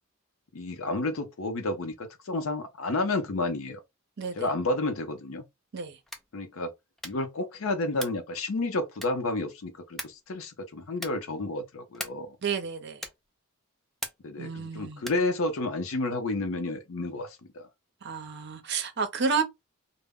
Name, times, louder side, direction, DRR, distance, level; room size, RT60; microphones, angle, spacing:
voice 1, 0.5-3.8 4.4-5.4 6.3-6.7 7.0-12.4 14.2-17.6, left 2 dB, 75° left, 0.6 m, -31 dB
sound 1, 6.0-6.4 7.0-7.3 7.9-8.3 9.0-9.4 10.0-10.3 10.9-11.3 11.9-12.3 13.0-13.3 14.0-14.4 15.0-15.3, equal, ahead, 0.3 m, -40 dB
voice 2, 12.4-13.1 14.4-15.0 18.0-19.4, right 5 dB, 55° right, 0.6 m, -31 dB
2.1 x 2.0 x 3.5 m
head